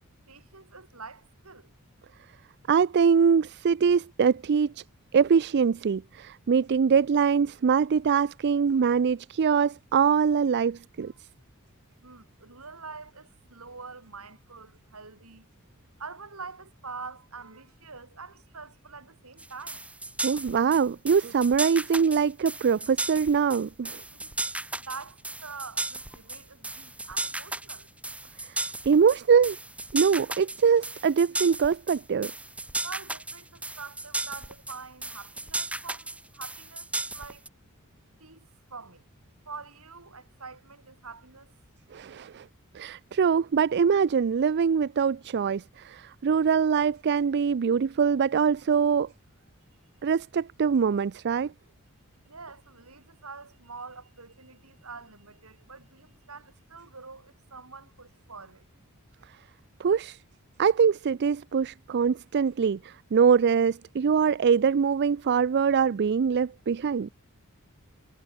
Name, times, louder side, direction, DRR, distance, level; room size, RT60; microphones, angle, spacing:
voice 1, 0.3-1.7 11.1-11.2 12.0-15.5 16.0-19.8 24.1-24.3 24.8-27.9 32.8-36.9 37.1-37.5 38.2-38.4 38.7-39.0 39.4-41.5 52.3-58.6, right 4 dB, 80° right, 5.2 m, -45 dB
voice 2, 2.7-4.8 5.1-11.1 20.2-24.0 28.4-29.6 29.9-32.3 41.9-42.5 42.7-49.1 50.0-51.5 59.8-60.2 60.6-67.1, right 6 dB, 50° right, 0.4 m, -23 dB
sound 1, 19.4-37.5, right 2 dB, 5° right, 1.4 m, -35 dB
head